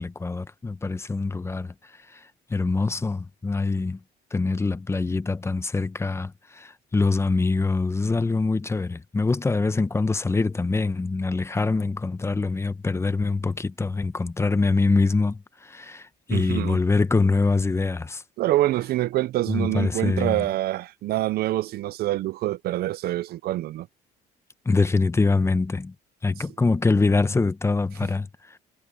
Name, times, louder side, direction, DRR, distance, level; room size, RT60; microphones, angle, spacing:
voice 1, 0.0-1.7 2.5-4.0 4.3-18.2 19.5-20.4 24.7-25.9 26.2-28.3, left 3 dB, 15° left, 0.9 m, -24 dB
voice 2, 16.3-16.8 18.4-23.9 28.0-28.1, right 15 dB, 65° right, 0.6 m, -26 dB
cardioid pair, 110°, 17 cm